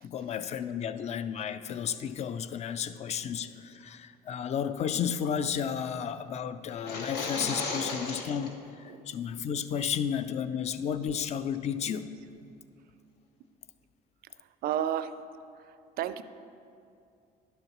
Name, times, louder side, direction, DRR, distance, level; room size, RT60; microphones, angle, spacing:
voice 1, 0.0-12.1, left 8 dB, 40° left, 12 dB, 0.4 m, -33 dB
sound 1, 6.7-8.5, left 3 dB, 75° left, 1.0 m, -35 dB
voice 2, 14.6-15.1 16.0-16.2, right 10 dB, 65° right, 13 dB, 0.4 m, -30 dB
11.5 x 6.6 x 3.0 m, 2.5 s
cardioid pair, 110°, 17 cm